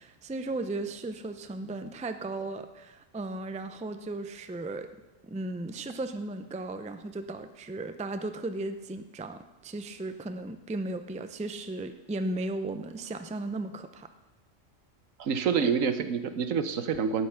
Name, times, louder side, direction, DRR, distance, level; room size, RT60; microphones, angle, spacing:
voice 1, 0.0-4.9 5.2-14.1, right 2 dB, 10° right, 9 dB, 0.3 m, -36 dB
voice 2, 15.2-17.3, right 6 dB, 85° right, 10 dB, 1.3 m, -27 dB
12.5 x 8.7 x 5.7 m, 1.1 s
omnidirectional pair, 1.4 m